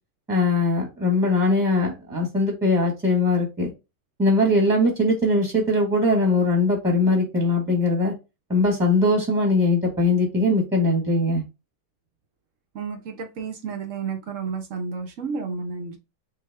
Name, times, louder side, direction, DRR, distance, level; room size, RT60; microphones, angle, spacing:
voice 1, 0.3-3.7 4.2-8.1 8.5-11.4, left 2 dB, ahead, 0 dB, 1.2 m, -21 dB
voice 2, 12.7-16.0, right 5 dB, 60° right, 4 dB, 1.1 m, -31 dB
3.6 x 3.4 x 3.5 m, 0.26 s
omnidirectional pair, 1.7 m